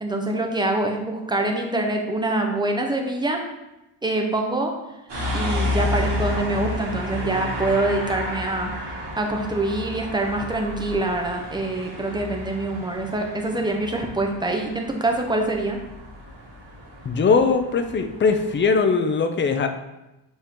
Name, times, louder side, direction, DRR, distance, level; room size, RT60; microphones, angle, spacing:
voice 1, 0.0-3.4 4.0-4.7 5.3-15.8, right 2 dB, 10° right, 2 dB, 0.7 m, -25 dB
sound 1, 5.1-18.7, left 1 dB, 55° right, 2.3 m, -31 dB
voice 2, 17.0-19.7, left 4 dB, 25° left, 7 dB, 0.4 m, -20 dB
7.0 x 4.4 x 3.6 m, 0.96 s
wide cardioid pair, 150°, 49 cm